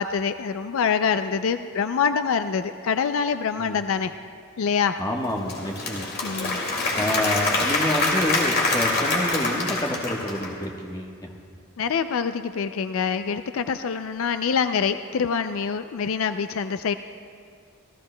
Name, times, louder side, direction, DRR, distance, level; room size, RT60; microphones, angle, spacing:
voice 1, 0.0-4.1 4.6-5.0 6.2-6.6 11.8-16.9, left 6 dB, 70° left, 10 dB, 0.4 m, -25 dB
voice 2, 5.0-6.1 6.9-11.1, left 1 dB, 15° left, 0 dB, 1.2 m, -28 dB
Applause / Crowd, 5.2-10.6, left 2 dB, 45° left, 2.2 m, -25 dB
27.5 x 15.0 x 2.2 m, 2.2 s
head